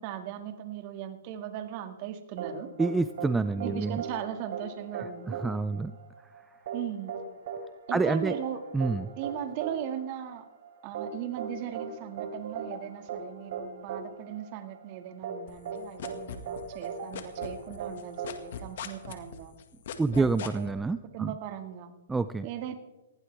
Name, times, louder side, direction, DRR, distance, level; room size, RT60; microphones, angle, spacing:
voice 1, 0.0-2.7 3.5-5.4 6.7-7.2 7.9-8.6 9.2-10.5 10.8-19.5 20.1-21.9 22.4-22.7, right 11 dB, 40° right, 7 dB, 2.0 m, -38 dB
sound 1, 2.4-19.2, right 6 dB, 60° right, 3.5 m, -39 dB
voice 2, 2.8-4.0 5.3-5.9 7.9-8.3 8.7-9.1 20.0-21.3 22.1-22.5, right 3 dB, 5° right, 13 dB, 0.4 m, -27 dB
sound 2, 15.5-16.9 17.1-20.7, left 9 dB, 60° left, 1.9 m, -39 dB
19.5 x 15.5 x 3.5 m, 1.1 s
hypercardioid pair, 150°, 0 cm